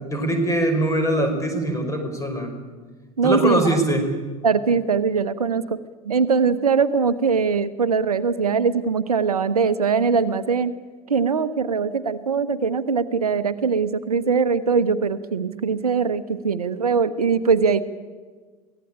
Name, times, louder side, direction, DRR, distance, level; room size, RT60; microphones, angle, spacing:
voice 1, 0.1-2.5 3.2-4.1, right 1 dB, 15° left, 6 dB, 5.2 m, -22 dB
voice 2, 3.2-3.8 4.4-5.8 6.0-10.7 11.1-17.8, right 5 dB, 75° right, 13 dB, 1.0 m, -21 dB
23.5 x 17.0 x 8.9 m, 1.4 s
figure-of-eight pair, 75°, 19 cm